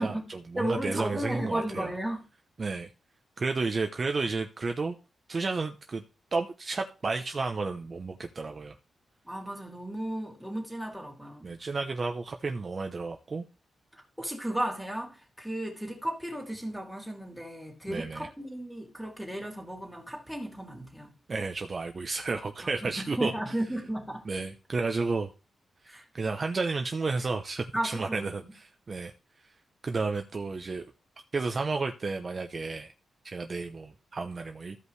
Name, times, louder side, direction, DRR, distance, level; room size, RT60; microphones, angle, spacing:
voice 1, 0.0-2.0 2.6-2.9 3.4-5.0 5.3-6.0 6.3-8.7 11.4-13.4 17.9-18.3 21.3-23.3 24.3-25.3 25.8-29.1 29.4-29.5 29.8-30.8 31.3-32.9 33.2-34.8, right 3 dB, 40° right, 0.8 m, -32 dB
voice 2, 0.6-2.2 9.2-11.5 13.9-21.1 22.8-24.3 25.9-26.0 27.7-28.2 28.4-28.5, right 1 dB, ahead, 2.9 m, -34 dB
14.5 x 5.3 x 3.2 m
cardioid pair, 110°, 0 cm